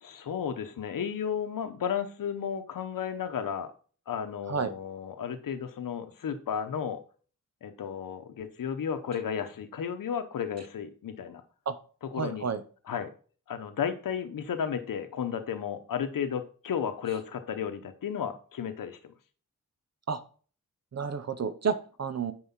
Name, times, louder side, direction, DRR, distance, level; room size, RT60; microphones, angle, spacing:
voice 1, 0.0-3.7 4.1-7.0 7.6-11.4 12.1-12.5 12.9-13.1 13.5-19.1, left 7 dB, 80° left, 7 dB, 0.9 m, -33 dB
voice 2, 12.2-12.6 20.1-20.2 20.9-22.3, right 6 dB, 50° right, 11 dB, 0.9 m, -30 dB
9.6 x 4.8 x 5.7 m, 0.40 s
wide cardioid pair, 140°, 33 cm